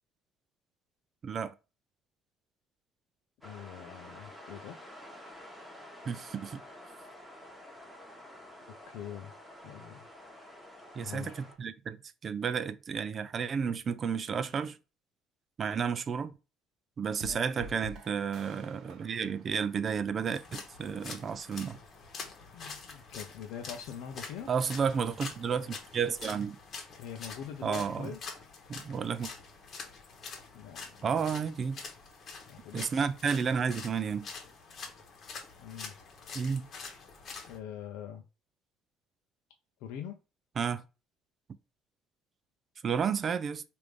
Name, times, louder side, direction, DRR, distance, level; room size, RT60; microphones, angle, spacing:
voice 1, 1.2-1.5 6.1-6.6 11.0-12.0 12.2-14.8 15.6-16.3 17.0-21.8 24.5-26.6 27.6-28.1 28.7-29.3 31.0-31.9 32.7-34.3 36.3-36.7 40.6-40.8 42.8-43.6, right 6 dB, 40° right, 0.3 m, -32 dB
voice 2, 3.4-4.8 8.9-9.3 9.6-10.1 11.0-11.3 17.3-17.5 22.5-24.5 27.0-28.2 30.5-31.4 32.5-32.9 35.6-35.9 37.5-38.2 39.8-40.2, left 9 dB, 80° left, 0.4 m, -43 dB
sound 1, 3.4-11.5, left 1 dB, ahead, 1.1 m, -50 dB
sound 2, 17.1-20.4, right 2 dB, 65° right, 0.8 m, -48 dB
sound 3, 20.3-37.6, left 4 dB, 50° left, 1.0 m, -46 dB
3.4 x 2.5 x 3.1 m
supercardioid pair, 95°, 0 cm